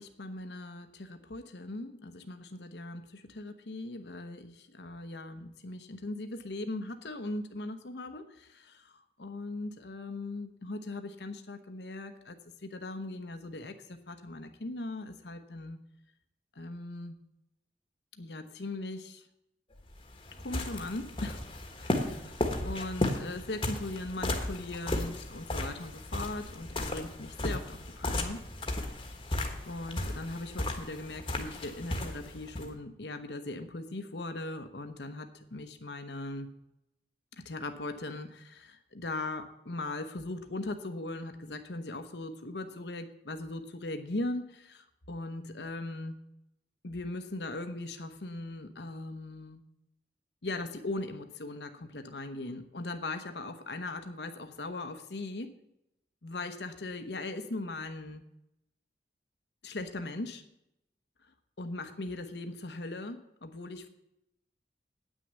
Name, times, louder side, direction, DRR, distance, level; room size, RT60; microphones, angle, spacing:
voice 1, 0.0-12.4 12.6-15.8 16.6-17.2 18.2-19.2 20.4-21.5 21.8-28.4 29.7-36.5 37.3-46.2 46.8-49.6 50.4-55.5 56.2-58.2 59.6-60.4 61.6-63.9, left 2 dB, 75° left, 8 dB, 1.0 m, -39 dB
sound 1, 19.8-32.7, left 1 dB, 30° left, 1.4 m, -35 dB
9.3 x 6.4 x 8.2 m, 0.83 s
head